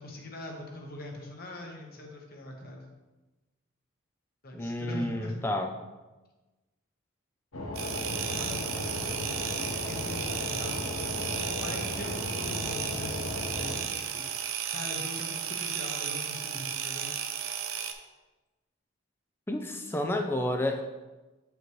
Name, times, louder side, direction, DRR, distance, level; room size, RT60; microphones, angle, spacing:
voice 1, 0.0-2.9 4.4-5.4 8.0-17.1, left 1 dB, 45° left, 0 dB, 1.1 m, -42 dB
voice 2, 4.5-5.7 19.5-20.8, left 1 dB, 10° left, 4 dB, 0.5 m, -30 dB
sound 1, 7.5-13.8, left 2 dB, 85° left, 1.1 m, -36 dB
sound 2, 7.8-17.9, right 8 dB, 80° right, 0.6 m, -34 dB
8.1 x 5.1 x 3.1 m, 1.1 s
head